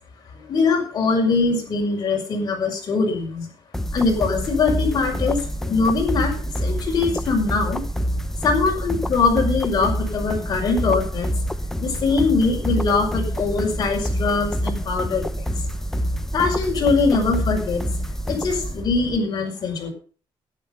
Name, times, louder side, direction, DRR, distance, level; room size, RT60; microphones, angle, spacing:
voice 1, 0.3-3.5 3.9-7.8 8.4-11.3 11.8-15.4 16.3-17.9 18.3-19.9, left 4 dB, 45° left, 0 dB, 5.5 m, -22 dB
sound 1, 3.7-19.2, equal, 5° left, 0.7 m, -27 dB
12.5 x 11.0 x 5.4 m, 0.39 s
cardioid pair, 160°, 9 cm